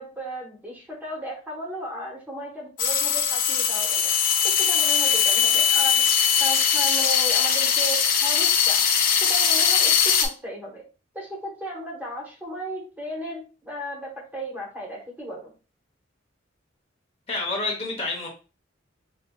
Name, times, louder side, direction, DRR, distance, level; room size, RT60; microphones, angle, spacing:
voice 1, 0.0-4.1 4.4-8.8 9.2-10.9 11.1-15.5, equal, 10° right, -3 dB, 1.0 m, -35 dB
sound 1, 2.8-10.3, left 7 dB, 45° left, 0.5 m, -21 dB
voice 2, 17.3-18.3, left 3 dB, 30° left, -1 dB, 0.9 m, -28 dB
4.1 x 2.7 x 2.2 m, 0.33 s
head